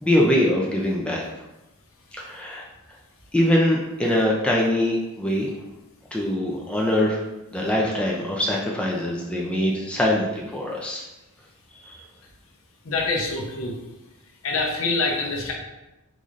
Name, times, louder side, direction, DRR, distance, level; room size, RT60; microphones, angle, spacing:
voice 1, 0.0-1.2 2.2-2.6 3.3-5.5 6.1-7.2 7.5-11.0 11.8-12.0, left 1 dB, 5° left, -3 dB, 0.4 m, -23 dB
voice 2, 12.8-13.8 14.4-15.5, left 3 dB, 65° left, 0 dB, 0.7 m, -25 dB
3.9 x 3.1 x 2.4 m, 0.97 s
head